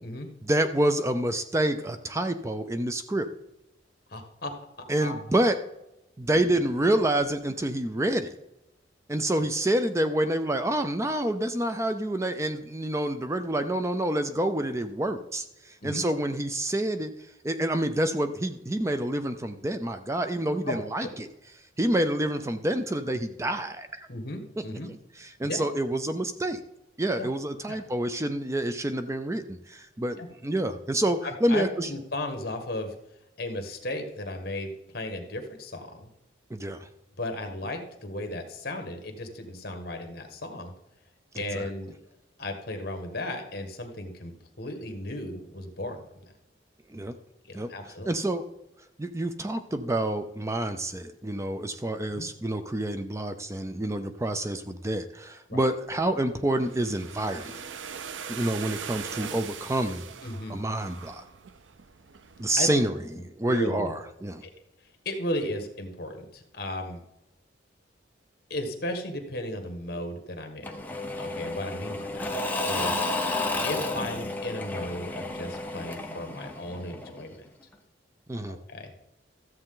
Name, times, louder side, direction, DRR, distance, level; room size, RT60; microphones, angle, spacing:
voice 1, 0.4-3.3 4.9-5.6 6.2-8.3 9.1-17.1 17.4-21.3 21.8-24.1 25.2-26.6 27.0-31.9 36.5-36.9 41.5-41.7 46.9-47.1 47.5-47.7 48.1-48.5 49.0-57.6 58.3-60.1 60.5-61.2 62.4-62.9 63.4-64.4 78.3-78.6, right 1 dB, 15° right, 9 dB, 0.5 m, -28 dB
voice 2, 4.1-4.5 4.8-5.4 15.8-16.0 20.6-21.1 24.1-24.9 25.4-25.6 27.2-27.3 27.7-27.8 30.2-30.3 31.2-32.9 33.4-36.1 37.2-40.7 41.3-42.0 42.4-46.2 47.4-48.1 52.1-52.2 55.5-55.7 60.2-60.6 62.6-62.8 63.1-63.9 64.4-64.5 65.0-67.0 68.5-70.8 71.2-72.3 72.6-73.0 73.6-77.4 78.5-78.9, left 1 dB, 55° left, 5 dB, 1.6 m, -35 dB
sound 1, 55.8-62.9, right 7 dB, 90° right, 0.6 m, -41 dB
Engine / Mechanisms / Drill, 70.6-77.3, left 2 dB, 10° left, 1.0 m, -32 dB
13.5 x 7.7 x 3.8 m, 0.88 s
head